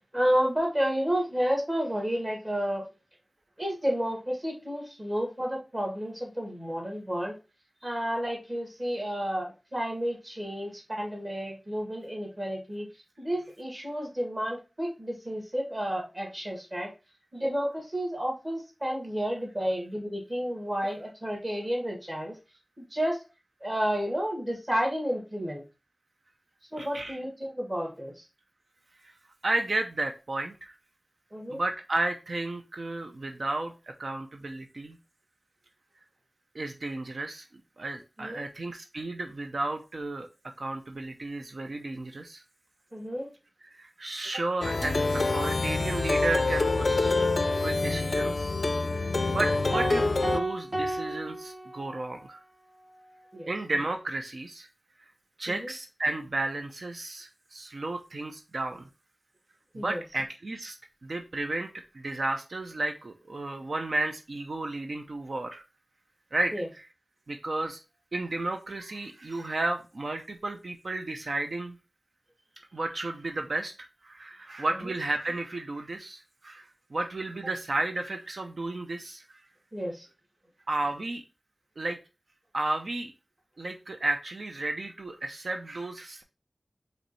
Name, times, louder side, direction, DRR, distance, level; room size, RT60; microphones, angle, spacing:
voice 1, 0.1-2.8 3.6-7.4 7.8-12.9 13.2-16.9 17.3-22.3 22.9-23.2 23.6-25.6 26.7-28.1 31.3-31.6 38.2-38.4 42.9-43.3 53.3-53.5 55.5-55.7 59.7-60.0 66.5-66.6 79.7-80.1, equal, 30° right, 0 dB, 2.2 m, -31 dB
voice 2, 26.8-27.2 29.0-29.1 29.4-30.8 31.5-35.0 36.5-37.5 37.8-40.3 40.6-42.4 43.6-47.3 47.6-48.5 48.9-52.4 53.5-54.7 55.0-55.1 55.4-58.9 59.7-60.8 61.0-61.7 61.9-65.6 66.3-66.9 67.3-67.8 68.1-71.8 72.7-79.4 80.7-81.2 81.8-82.0 82.5-83.1 83.6-86.2, right 2 dB, 70° right, 5 dB, 0.6 m, -33 dB
Plucked string instrument, 44.6-50.4, left 3 dB, 60° left, 0.4 m, -26 dB
sound 1, 49.7-52.2, right 1 dB, 50° right, 1.5 m, -33 dB
5.1 x 3.2 x 3.0 m, 0.30 s
wide cardioid pair, 75°, 0 cm